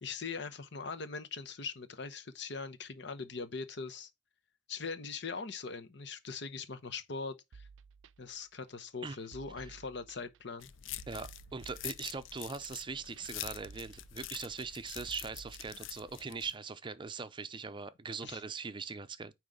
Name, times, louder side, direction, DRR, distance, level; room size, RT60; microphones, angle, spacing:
voice 1, 0.0-4.1 4.7-7.7 8.2-10.7 18.2-18.4, left 4 dB, 65° left, 0.9 m, -41 dB
sound 1, 7.5-15.7, right 5 dB, 80° right, 0.4 m, -55 dB
sound 2, 10.6-16.6, left 12 dB, 90° left, 0.5 m, -46 dB
voice 2, 11.1-19.3, right 5 dB, 25° right, 0.5 m, -41 dB
9.3 x 3.2 x 5.0 m
head